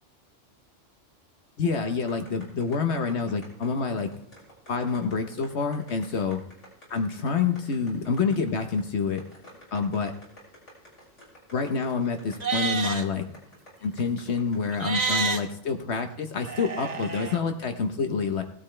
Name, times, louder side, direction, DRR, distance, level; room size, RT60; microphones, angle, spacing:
voice 1, 1.6-4.1 4.7-6.4 6.9-9.2 9.7-10.1 11.5-13.2 13.8-18.4, left 5 dB, 70° left, 5 dB, 1.2 m, -27 dB
sound 1, 2.1-14.9, left 1 dB, 85° left, 6.2 m, -50 dB
Livestock farm animals working animals, 12.3-13.0 14.7-15.4 16.4-17.4, right 4 dB, 40° right, 1.0 m, -29 dB
17.5 x 12.5 x 3.3 m, 0.65 s
omnidirectional pair, 1.2 m